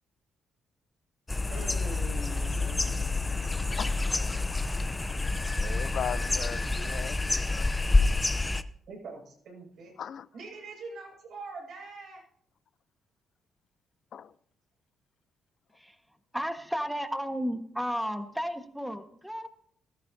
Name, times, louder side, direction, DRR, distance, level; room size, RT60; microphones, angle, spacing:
sound 1, 1.3-8.6, left 3 dB, 20° left, 0.7 m, -28 dB
voice 1, 1.5-3.0 8.9-9.9 10.3-12.2, right 3 dB, 65° right, 6.0 m, -43 dB
voice 2, 3.7-7.8 10.0-10.3 14.1-14.3, left 8 dB, 60° left, 0.5 m, -40 dB
voice 3, 16.3-19.5, equal, ahead, 1.4 m, -33 dB
16.5 x 13.5 x 2.7 m
cardioid pair, 90°, 0 cm